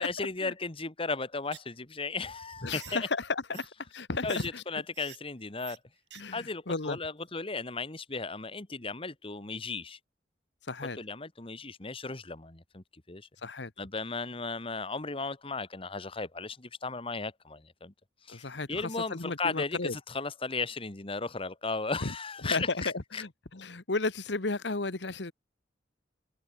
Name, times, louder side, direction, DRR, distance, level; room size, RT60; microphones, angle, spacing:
voice 1, 0.0-3.1 4.2-5.8 6.3-10.0 10.9-13.3 13.8-17.9 18.3-23.2, left 4 dB, 30° left, 1.5 m, -36 dB
sound 1, 1.5-1.7 2.0-2.1 2.5-3.0 3.5-3.7 4.2-4.5 4.9-5.2 5.6-5.8 6.1-6.2 6.5-6.6, right 13 dB, 75° right, 4.0 m, -48 dB
voice 2, 2.6-3.7 3.9-4.6 6.1-7.0 10.7-11.0 13.4-13.7 18.3-20.0 22.0-22.1 22.4-25.3, left 3 dB, 75° left, 1.4 m, -33 dB
head